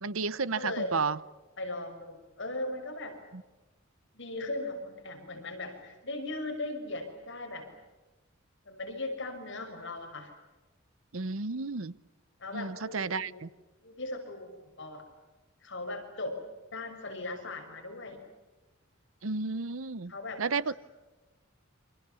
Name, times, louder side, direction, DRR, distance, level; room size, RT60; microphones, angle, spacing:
voice 1, 0.0-1.2 3.3-3.4 11.1-11.9 12.5-13.5 19.2-20.1 20.4-20.7, right 4 dB, 80° right, 18 dB, 0.9 m, -32 dB
voice 2, 0.5-1.0 1.6-3.2 4.1-7.7 8.6-10.3 12.4-13.4 13.8-15.0 15.6-16.4 16.7-18.2 20.1-20.7, left 2 dB, 65° left, 4 dB, 6.3 m, -38 dB
29.0 x 26.0 x 7.1 m, 1.2 s
head